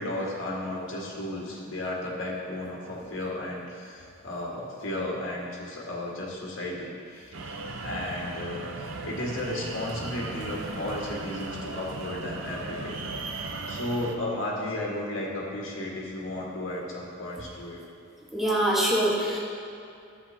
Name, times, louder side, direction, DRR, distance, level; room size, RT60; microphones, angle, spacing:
voice 1, 0.0-7.6 7.8-8.6 9.0-13.0 13.7-17.8, left 1 dB, 80° left, -3 dB, 1.9 m, -34 dB
sound 1, 7.3-14.2, right 3 dB, 75° right, 0.7 m, -37 dB
voice 2, 18.3-19.4, right 1 dB, ahead, -7 dB, 1.5 m, -24 dB
12.5 x 8.0 x 2.9 m, 2.6 s
head